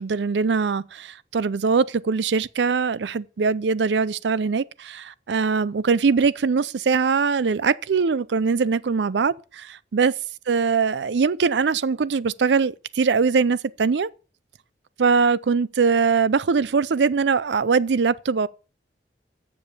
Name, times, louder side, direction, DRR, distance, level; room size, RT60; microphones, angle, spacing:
voice 1, 0.0-10.1 10.5-14.1 15.0-18.5, right 5 dB, 80° right, 0.5 m, -22 dB
7.7 x 7.0 x 6.6 m
head